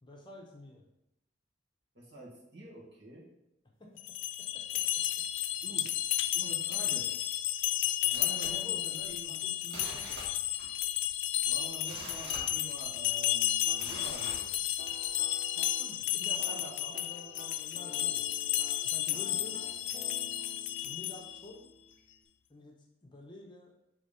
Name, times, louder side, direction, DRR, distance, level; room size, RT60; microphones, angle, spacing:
voice 1, 0.0-0.9 3.8-3.9 4.4-5.0 8.1-10.2 15.5-18.2 18.8-19.6 20.8-21.7 22.5-23.7, left 1 dB, 25° left, 1 dB, 0.7 m, -50 dB
voice 2, 2.0-3.3 5.6-5.8 6.3-7.1 8.1-9.4 11.5-14.5 16.2-17.0, right 1 dB, 65° right, -4 dB, 1.7 m, -47 dB
sound 1, 4.0-21.4, left 13 dB, 80° left, 0.3 m, -32 dB
sound 2, 8.1-9.2 9.6-10.8 11.1-11.2 11.6-13.1 13.7-15.0 15.5-15.6, right 1 dB, 85° right, 1.6 m, -45 dB
sound 3, 13.7-22.2, left 1 dB, 40° right, 0.7 m, -52 dB
5.1 x 3.4 x 5.5 m, 0.84 s
head